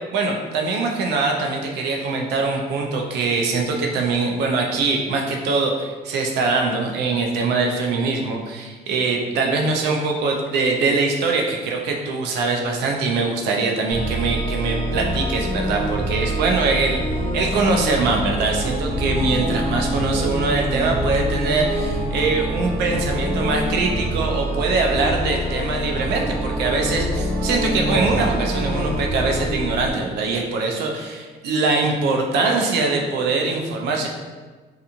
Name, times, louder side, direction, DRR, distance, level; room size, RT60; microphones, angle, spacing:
voice 1, 0.1-17.0 17.3-34.1, right 3 dB, 80° right, 2 dB, 0.5 m, -22 dB
sound 1, 13.9-29.9, right 1 dB, 55° right, 1.0 m, -25 dB
2.8 x 2.4 x 2.4 m, 1.4 s
cardioid pair, 110°, 17 cm